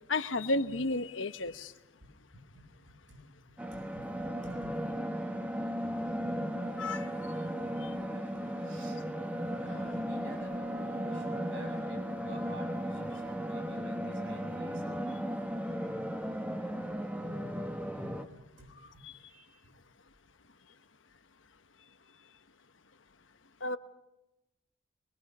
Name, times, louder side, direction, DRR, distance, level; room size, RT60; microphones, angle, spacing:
voice 1, 0.1-1.7 6.8-7.1 7.8-7.9 19.0-19.1 23.6-23.8, left 2 dB, 75° left, 10 dB, 1.1 m, -32 dB
voice 2, 2.3-5.0 7.9-8.0 8.6-9.0 9.6-15.0 18.1-19.6, equal, 70° right, 1 dB, 7.4 m, -50 dB
sound 1, 3.6-18.3, equal, 10° right, 1.1 m, -36 dB
24.0 x 23.5 x 5.5 m, 0.95 s
head